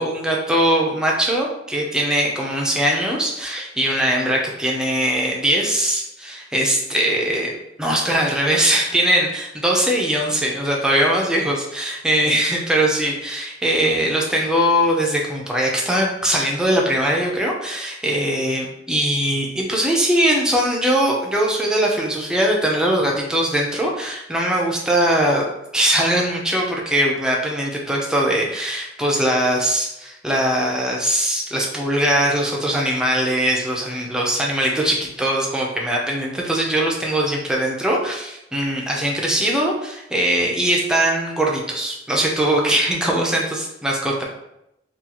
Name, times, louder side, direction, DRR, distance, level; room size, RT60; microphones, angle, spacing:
voice 1, 0.0-7.5 7.8-25.4 25.7-44.2, right 1 dB, 5° right, -2 dB, 0.5 m, -21 dB
3.7 x 2.4 x 2.9 m, 0.84 s
head